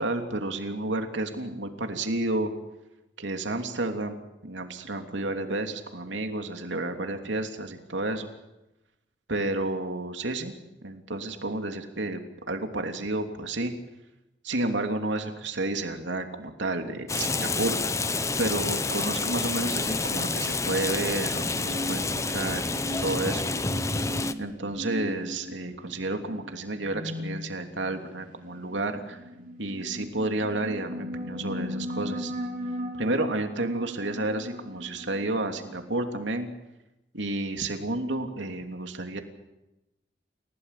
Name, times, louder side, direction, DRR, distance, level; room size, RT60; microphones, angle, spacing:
voice 1, 0.0-2.5 3.2-8.3 9.3-10.5 10.8-12.2 12.5-13.7 14.4-23.5 24.4-29.2 29.6-32.3 33.0-36.5 37.1-39.2, right 2 dB, 80° right, 5 dB, 3.1 m, -31 dB
Rain, 17.1-24.3, left 3 dB, 15° left, 0.9 m, -29 dB
sound 1, 21.2-35.8, left 1 dB, 45° right, 3.2 m, -38 dB
29.5 x 17.0 x 8.4 m, 0.96 s
head